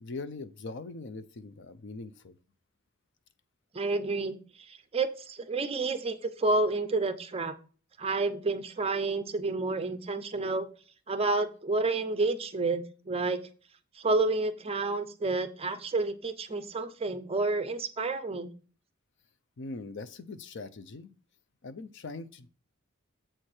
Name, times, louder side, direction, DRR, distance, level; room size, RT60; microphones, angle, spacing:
voice 1, 0.0-2.3 19.6-21.1 21.6-22.5, left 3 dB, 60° left, 14 dB, 0.5 m, -41 dB
voice 2, 3.7-4.4 4.9-7.5 8.0-10.7 11.1-13.4 14.0-18.5, right 3 dB, 30° right, 11 dB, 0.6 m, -29 dB
7.6 x 4.4 x 4.8 m, 0.37 s
head